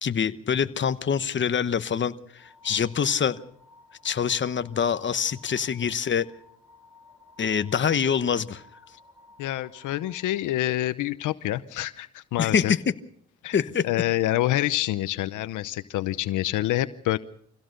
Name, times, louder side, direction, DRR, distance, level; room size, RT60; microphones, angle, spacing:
voice 1, 0.0-3.4 4.0-6.3 7.4-8.6 12.4-12.8 13.5-13.8, left 7 dB, 40° left, 12 dB, 1.1 m, -25 dB
sound 1, 2.4-10.4, left 2 dB, 10° right, 6.9 m, -55 dB
voice 2, 9.4-12.7 13.4-13.6 13.8-17.2, left 15 dB, 85° left, 14 dB, 0.9 m, -27 dB
24.5 x 16.5 x 6.7 m, 0.65 s
cardioid pair, 90°, 30 cm